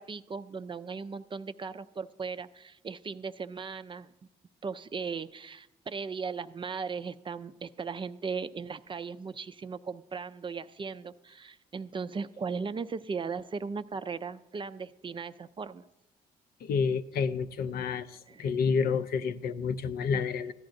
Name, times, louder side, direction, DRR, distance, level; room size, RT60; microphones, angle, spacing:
voice 1, 0.0-4.1 4.6-15.8 18.3-18.5, right 5 dB, 30° right, 12 dB, 0.4 m, -37 dB
voice 2, 16.6-18.1 18.4-20.5, left 5 dB, 60° left, 12 dB, 0.5 m, -29 dB
14.5 x 10.5 x 2.6 m, 0.94 s
supercardioid pair, 65°, 17 cm